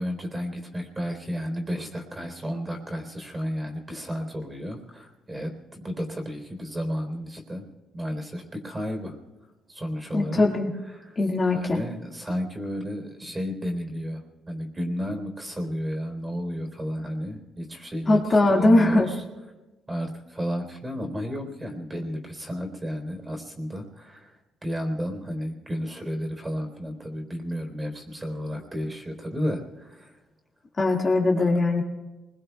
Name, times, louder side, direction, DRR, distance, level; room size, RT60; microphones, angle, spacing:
voice 1, 0.0-7.7 7.9-9.2 9.7-10.5 10.8-11.2 11.5-19.2 19.9-30.2 31.4-31.5, equal, 20° right, 3 dB, 3.8 m, -32 dB
voice 2, 10.1-10.7 11.2-11.8 18.1-19.1 30.8-31.8, left 2 dB, 35° left, -1 dB, 2.0 m, -20 dB
27.5 x 22.0 x 2.4 m, 1.1 s
cardioid pair, 90°, 0 cm